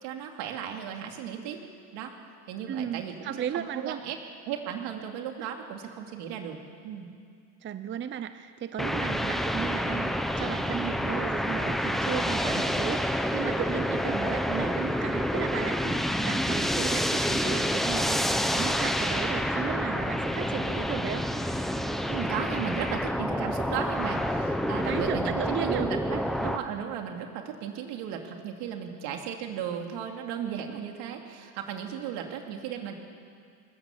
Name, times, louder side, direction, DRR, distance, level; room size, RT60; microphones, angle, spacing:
voice 1, 0.0-1.6 1.9-2.2 2.5-4.2 4.5-6.6 6.8-7.1 22.1-32.9, right 9 dB, 75° right, 3 dB, 2.8 m, -35 dB
voice 2, 2.7-4.0 5.4-5.5 7.6-13.0 13.3-21.3 24.8-25.9, right 9 dB, 30° right, 11 dB, 0.7 m, -35 dB
sound 1, 8.8-26.6, equal, ahead, 0.9 m, -28 dB
21.5 x 20.0 x 7.4 m, 2.3 s
cardioid pair, 125°, 41 cm